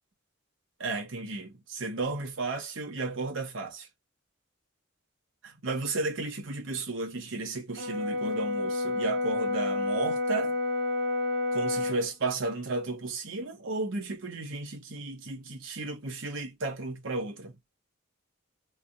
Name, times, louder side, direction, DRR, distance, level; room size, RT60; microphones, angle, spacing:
voice 1, 0.8-3.9 5.4-10.6 11.5-17.6, right 3 dB, 70° right, 0.9 m, -33 dB
Brass instrument, 7.8-12.0, left 2 dB, 50° right, 0.6 m, -29 dB
3.3 x 2.3 x 2.6 m
head